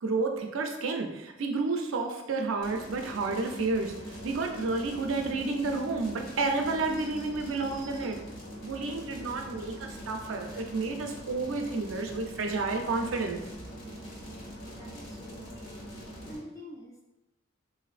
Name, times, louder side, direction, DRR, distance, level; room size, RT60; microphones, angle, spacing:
voice 1, 0.0-8.2 8.6-13.4, right 3 dB, 75° right, 3 dB, 0.5 m, -31 dB
sound 1, 2.6-16.4, equal, 75° left, 1.4 m, -43 dB
voice 2, 14.7-15.9 16.3-17.0, equal, 15° left, -2 dB, 0.4 m, -47 dB
4.1 x 2.6 x 2.4 m, 1.0 s
head